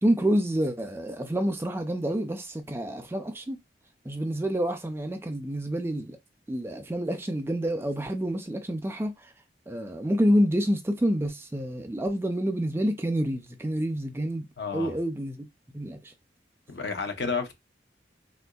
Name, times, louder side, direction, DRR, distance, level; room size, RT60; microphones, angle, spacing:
voice 1, 0.0-3.6 4.1-6.2 6.5-9.3 9.7-14.5 14.7-15.5 15.7-16.1, equal, 15° right, 0.3 m, -28 dB
voice 2, 14.6-14.9 16.7-17.5, left 4 dB, 70° left, 0.7 m, -31 dB
3.6 x 2.6 x 2.3 m
head